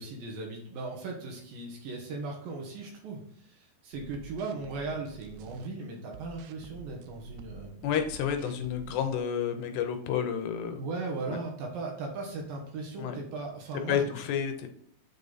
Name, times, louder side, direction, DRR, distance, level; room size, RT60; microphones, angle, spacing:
voice 1, 0.0-7.7 10.8-14.1, right 3 dB, 65° right, 0 dB, 2.8 m, -38 dB
sound 1, 3.9-5.7 6.1-9.2, right 7 dB, 90° right, 2.8 m, -49 dB
voice 2, 7.8-10.8 11.3-11.4 13.0-13.2 13.9-14.7, left 8 dB, 80° left, 6 dB, 2.8 m, -30 dB
7.4 x 5.3 x 4.0 m, 0.64 s
omnidirectional pair, 4.9 m